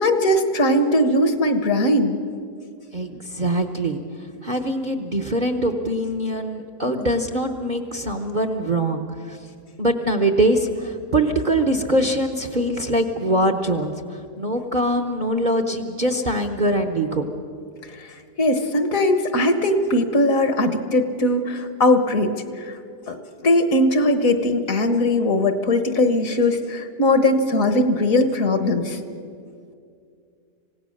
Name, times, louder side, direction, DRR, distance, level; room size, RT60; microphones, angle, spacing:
voice 1, 0.0-2.2 18.4-22.3 23.1-23.2 23.4-29.0, left 1 dB, 55° left, 8 dB, 1.5 m, -19 dB
voice 2, 2.9-4.0 4.4-9.0 9.3-9.4 9.8-17.2, right 1 dB, 35° right, 6 dB, 0.9 m, -23 dB
26.5 x 17.0 x 6.5 m, 2.4 s
omnidirectional pair, 1.7 m